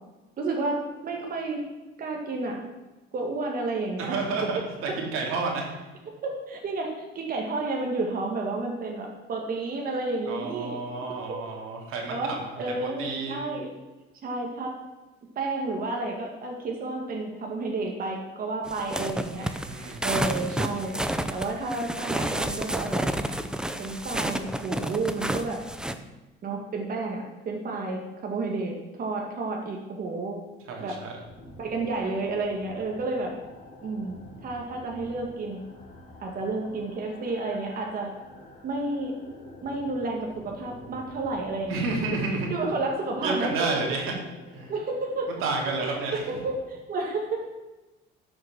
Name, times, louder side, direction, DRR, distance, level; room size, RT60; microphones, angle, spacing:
voice 1, 0.4-1.6 2.0-2.6 3.1-4.2 6.1-10.8 12.1-13.7 14.2-14.7 15.4-19.5 20.0-21.0 21.3-23.1 23.8-25.6 26.4-30.4 30.8-31.0 31.6-33.3 33.8-35.6 36.2-38.1 38.6-39.1 39.6-41.8 42.5-43.5 44.7-45.3 45.8-47.5, right 3 dB, 45° right, 0 dB, 1.9 m, -31 dB
voice 2, 4.0-5.7 10.3-12.4 12.8-13.5 19.4-20.4 30.7-31.1 41.7-42.5 43.2-44.1 44.5-44.7 45.4-46.2, right 3 dB, 85° right, 0 dB, 2.8 m, -30 dB
sound 1, 18.7-25.9, right 1 dB, 5° right, 0.6 m, -30 dB
sound 2, 31.2-46.6, left 1 dB, 40° left, 4.3 m, -48 dB
12.0 x 6.6 x 6.0 m, 1.1 s
cardioid pair, 135°, 21 cm